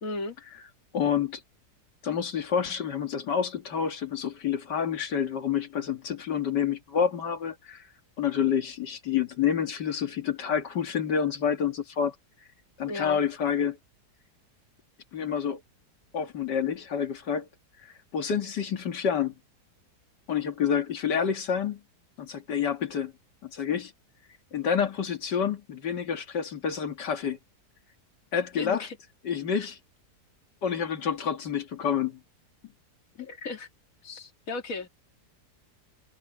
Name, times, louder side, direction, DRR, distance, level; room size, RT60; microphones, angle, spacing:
voice 1, 0.0-0.4 12.9-13.2 28.6-28.9 29.6-29.7 33.2-33.7 34.0-34.9, left 3 dB, 55° left, 2.4 m, -35 dB
voice 2, 0.9-1.4 2.0-7.8 8.2-12.2 12.8-13.8 15.1-15.6 16.1-17.5 17.8-19.3 20.3-21.8 22.2-23.1 23.4-23.9 24.5-27.4 28.3-28.9 29.2-29.8 30.6-32.2, left 7 dB, 85° left, 2.4 m, -28 dB
omnidirectional pair, 1.8 m